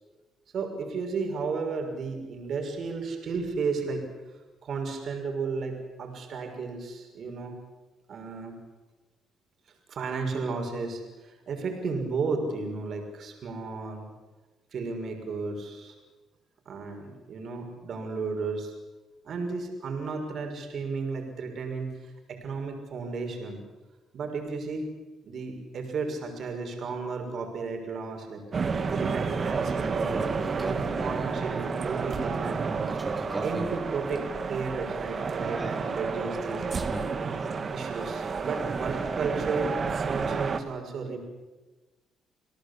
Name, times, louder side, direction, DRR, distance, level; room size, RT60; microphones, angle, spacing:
voice 1, 0.5-4.1 4.6-7.6 8.1-8.6 9.9-14.1 14.7-15.9 16.7-18.7 19.2-23.6 24.1-24.9 25.2-32.9 33.4-36.6 37.7-39.8 40.0-41.2, right 4 dB, 60° right, 3 dB, 6.1 m, -33 dB
sound 1, 28.5-40.6, right 5 dB, 45° right, 2.1 m, -30 dB
sound 2, 30.1-31.3 32.8-37.0, right 1 dB, 10° right, 4.3 m, -39 dB
29.5 x 18.0 x 8.5 m, 1.2 s
cardioid pair, 90°, 0 cm